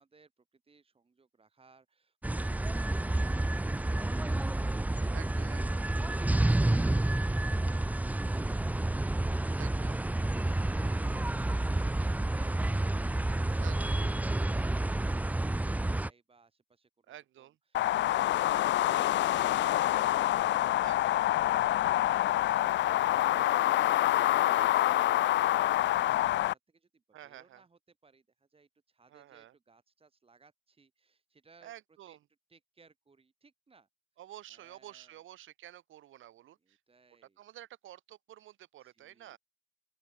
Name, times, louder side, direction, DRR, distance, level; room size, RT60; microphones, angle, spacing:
voice 1, 0.0-9.8 14.2-31.7 32.1-32.2 32.5-33.9 34.5-35.2 36.6-37.4 38.8-39.4, right 4 dB, 30° right, 4.8 m, -64 dB
sound 1, 2.2-16.1, right 2 dB, 10° right, 0.6 m, -29 dB
voice 2, 5.1-5.9 9.6-10.1 13.6-14.1 14.5-14.7 17.1-17.6 20.8-21.2 27.1-27.6 29.1-29.5 31.6-32.2 34.2-36.8 37.4-39.4, right 13 dB, 80° right, 4.5 m, -51 dB
sound 2, 17.7-26.5, left 14 dB, 65° left, 0.5 m, -26 dB
open air
cardioid pair, 90°, 20 cm